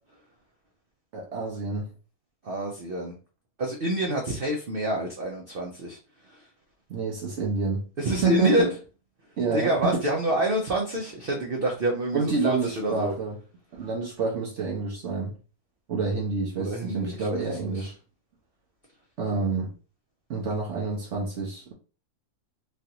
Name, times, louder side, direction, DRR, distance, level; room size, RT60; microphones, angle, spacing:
voice 1, 1.1-1.9 6.9-7.9 8.2-8.7 9.4-10.0 12.1-13.4 13.7-15.3 15.9-17.9 19.2-19.7 20.3-21.7, right 4 dB, 60° right, 0.8 m, -28 dB
voice 2, 2.4-3.2 3.6-6.5 8.0-8.7 9.5-13.1 16.6-17.9, right 1 dB, 90° right, 0.4 m, -27 dB
3.2 x 2.4 x 2.8 m
omnidirectional pair, 1.8 m